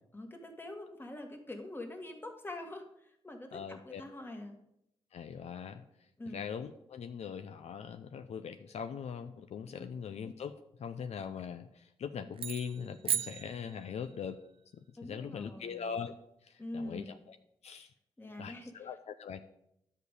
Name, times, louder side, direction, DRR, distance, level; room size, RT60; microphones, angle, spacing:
voice 1, 0.1-4.6 6.2-6.4 9.8-9.9 15.0-15.9 16.6-17.2 18.2-18.9, left 1 dB, 20° left, 3 dB, 1.9 m, -44 dB
voice 2, 3.5-4.0 5.1-5.8 6.3-14.4 14.7-16.1 16.4-17.4 17.6-17.9 18.4-19.4, left 7 dB, 75° left, 8 dB, 0.6 m, -41 dB
sound 1, 12.3-14.3, right 8 dB, 55° right, 0.4 m, -36 dB
11.0 x 5.2 x 8.2 m, 0.78 s
wide cardioid pair, 105°, 11 cm